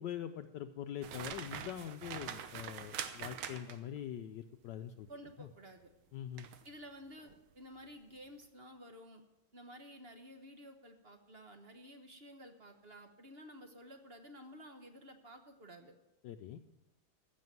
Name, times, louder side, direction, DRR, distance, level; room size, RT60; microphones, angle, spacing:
voice 1, 0.0-5.1 5.4-5.5 6.1-6.5 16.2-16.6, left 10 dB, 70° left, 7 dB, 1.2 m, -43 dB
sound 1, 1.0-4.0 6.4-6.7 7.2-7.4, right 8 dB, 85° right, 1.7 m, -44 dB
voice 2, 5.1-5.9 6.6-7.3 7.5-9.2 9.5-16.0, equal, 35° right, 6 dB, 1.1 m, -53 dB
15.0 x 7.0 x 9.3 m, 0.96 s
omnidirectional pair, 2.1 m